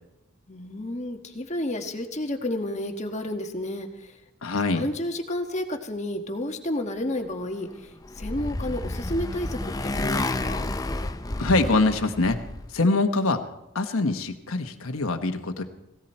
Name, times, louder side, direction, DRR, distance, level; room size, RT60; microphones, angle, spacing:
voice 1, 0.5-4.2 4.7-10.7, left 1 dB, 35° left, 4 dB, 1.5 m, -31 dB
voice 2, 4.4-4.9 11.4-12.4 12.7-13.4 13.7-15.6, left 2 dB, 85° left, 6 dB, 1.2 m, -24 dB
Motorcycle, 7.6-12.7, left 2 dB, 15° left, 0.5 m, -30 dB
17.5 x 17.5 x 4.4 m, 0.91 s
head